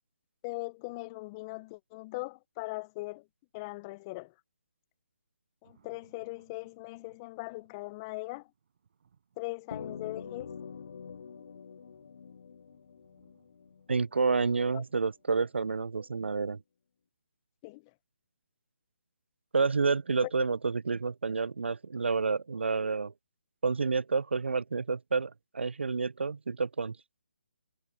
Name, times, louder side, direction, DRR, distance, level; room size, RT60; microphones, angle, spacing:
voice 1, 0.4-3.3 3.5-4.3 5.6-8.5 9.4-10.5 14.7-14.8 17.6-17.8 20.2-20.3, left 24 dB, 25° left, 0.6 m, -40 dB
sound 1, 5.6-15.6, right 7 dB, 55° right, 7.3 m, -70 dB
sound 2, 9.7-14.3, left 6 dB, 60° left, 0.3 m, -45 dB
voice 2, 13.9-16.6 19.5-23.1 23.6-27.0, right 4 dB, 85° right, 0.4 m, -29 dB
figure-of-eight pair, 150°, 6 cm